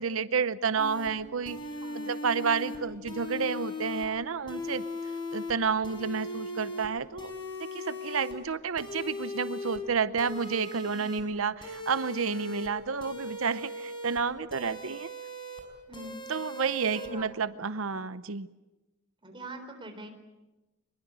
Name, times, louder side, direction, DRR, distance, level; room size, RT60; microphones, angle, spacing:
voice 1, 0.0-1.6 2.1-4.8 5.3-7.3 7.6-15.1 16.3-18.5, right 5 dB, 75° right, 14 dB, 0.8 m, -30 dB
sound 1, 0.8-1.1 1.5-2.8 3.1-4.1 4.5-5.5 5.8-6.9 7.2-8.3 8.8-9.8 10.2-11.2 11.6-12.7 13.0-14.2 14.5-15.6 15.9-17.1, left 1 dB, 25° left, 5.8 m, -38 dB
voice 2, 1.8-2.1 10.9-11.2 15.9-16.3 16.9-17.4 19.2-20.1, right 2 dB, 25° right, 5 dB, 4.0 m, -44 dB
25.0 x 22.0 x 8.8 m, 1.0 s
head